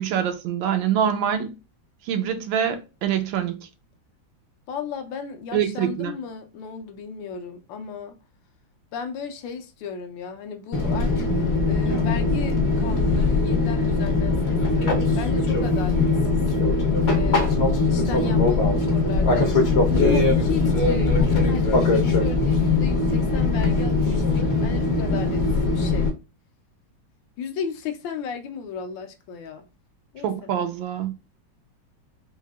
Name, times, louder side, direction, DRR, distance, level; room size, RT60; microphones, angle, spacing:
voice 1, 0.0-1.5 2.1-3.6 5.5-6.2 30.2-31.1, right 9 dB, 80° right, 1.3 m, -25 dB
voice 2, 4.7-8.2 8.9-11.3 11.7-16.4 17.1-26.1 27.4-29.7 30.1-30.5, left 6 dB, 75° left, 1.3 m, -34 dB
Fixed-wing aircraft airplane, 10.7-26.1, left 3 dB, 55° left, 0.7 m, -21 dB
4.7 x 2.6 x 2.2 m
omnidirectional pair, 2.2 m